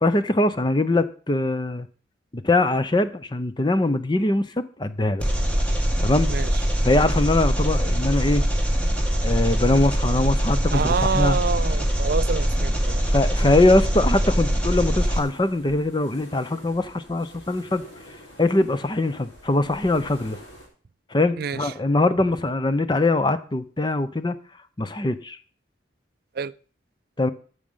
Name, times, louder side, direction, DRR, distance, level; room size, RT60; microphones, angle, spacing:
voice 1, 0.0-1.9 2.3-5.2 6.0-6.3 6.8-8.4 9.2-11.4 13.1-17.8 18.4-20.4 21.1-24.4 24.8-25.4 27.2-27.3, left 2 dB, 25° left, 0.7 m, -22 dB
Engine, 5.2-15.2, equal, 5° left, 1.7 m, -23 dB
voice 2, 10.7-13.0 21.4-21.7 26.4-26.5, right 5 dB, 50° right, 0.4 m, -27 dB
sound 1, 15.1-20.7, equal, 80° left, 4.9 m, -46 dB
14.0 x 6.4 x 5.6 m
head